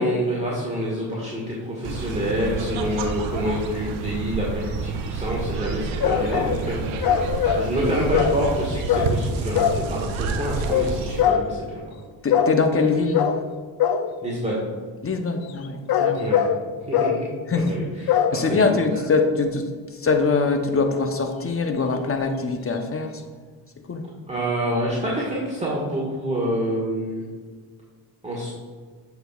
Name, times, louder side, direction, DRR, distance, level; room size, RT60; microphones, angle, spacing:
voice 1, 0.0-11.8 14.2-14.6 16.1-16.4 16.9-17.2 17.5-18.7 24.3-27.2 28.2-28.5, equal, 15° right, -5 dB, 1.7 m, -27 dB
sound 1, 1.8-11.2, right 4 dB, 85° right, 0.7 m, -29 dB
sound 2, 6.0-6.6 7.0-7.7 8.1-8.4 8.9-9.1 9.5-9.8 10.7-10.9 11.2-11.5 12.3-12.6 13.1-13.4 13.8-14.1 15.6-16.6 16.9-17.2 18.1-18.4, left 8 dB, 50° left, 0.6 m, -21 dB
voice 2, 12.2-13.4 15.0-16.3 17.5-17.7 18.3-19.7 20.0-23.1 23.9-24.0, left 4 dB, 30° left, 6 dB, 0.9 m, -23 dB
7.8 x 5.8 x 2.4 m, 1.5 s
supercardioid pair, 60°, 46 cm